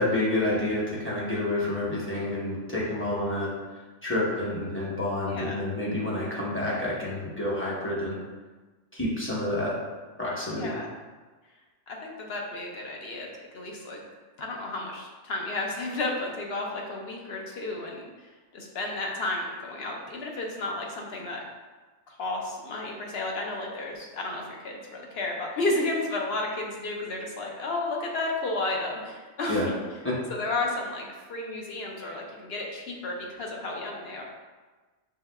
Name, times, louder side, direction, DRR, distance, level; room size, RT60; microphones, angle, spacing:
voice 1, 0.0-3.5 4.0-8.2 8.9-9.8 10.2-10.7 29.5-29.7 30.0-30.1, left 1 dB, 10° left, -7 dB, 0.7 m, -28 dB
voice 2, 5.2-5.7 10.5-10.9 11.9-13.3 13.5-14.0 14.4-18.1 18.5-21.4 22.1-29.7 30.3-34.2, left 2 dB, 60° left, 0 dB, 0.9 m, -32 dB
5.4 x 3.2 x 2.2 m, 1.3 s
omnidirectional pair, 1.3 m